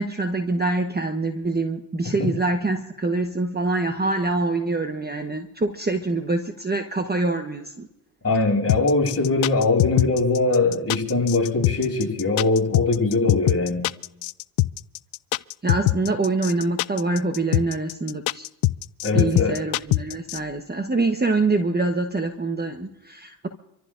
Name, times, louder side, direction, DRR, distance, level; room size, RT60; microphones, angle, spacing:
voice 1, 0.0-7.9 15.6-18.4 19.1-23.5, right 2 dB, 20° right, 6 dB, 1.2 m, -25 dB
voice 2, 8.2-13.8 19.0-19.6, left 3 dB, 30° left, -1 dB, 7.6 m, -21 dB
sound 1, 8.7-20.4, left 18 dB, 70° left, 0.6 m, -22 dB
26.5 x 14.5 x 2.6 m, 0.86 s
cardioid pair, 75°, 50 cm